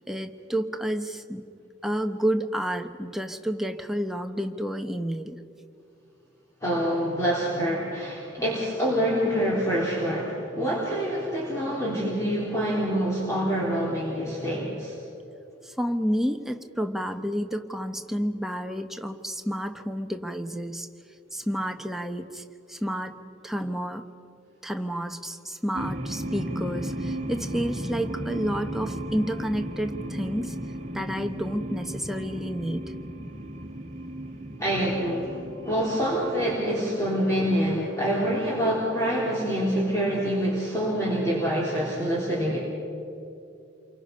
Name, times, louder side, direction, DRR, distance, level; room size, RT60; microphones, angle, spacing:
voice 1, 0.1-1.4 1.8-5.4 15.6-20.9 21.3-22.4 22.7-23.2 23.4-24.0 24.6-30.6 30.9-32.9, equal, ahead, 5 dB, 0.9 m, -30 dB
voice 2, 6.6-14.9 34.6-35.4 35.6-42.6, equal, 15° left, -6 dB, 3.8 m, -26 dB
sound 1, 25.7-36.7, right 1 dB, 35° right, 1.6 m, -35 dB
29.0 x 24.0 x 5.4 m, 2.7 s
head